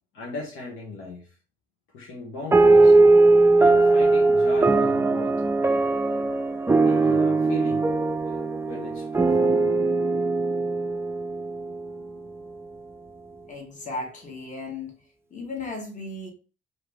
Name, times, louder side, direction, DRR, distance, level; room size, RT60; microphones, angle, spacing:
voice 1, 0.1-1.4 1.9-3.0 3.6-5.4 6.8-7.9 8.2-9.8, left 3 dB, 85° left, 1.0 m, -38 dB
sound 1, 2.5-12.3, right 3 dB, 10° right, 0.3 m, -20 dB
voice 2, 13.5-14.9 15.3-16.3, left 3 dB, 40° left, 1.3 m, -35 dB
2.9 x 2.7 x 3.3 m
cardioid pair, 90°, 20 cm